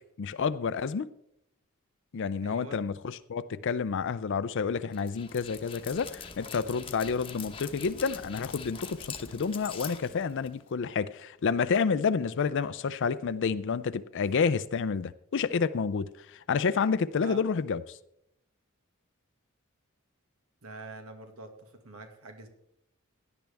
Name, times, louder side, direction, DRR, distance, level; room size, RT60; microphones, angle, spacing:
voice 1, 0.2-1.1 2.1-18.0, left 5 dB, 60° left, 0.4 m, -29 dB
voice 2, 2.4-2.8 17.2-17.4 20.6-22.5, right 3 dB, 85° right, 1.9 m, -45 dB
Dog, 4.9-10.7, left 6 dB, 25° left, 0.9 m, -43 dB
16.5 x 10.5 x 3.5 m
head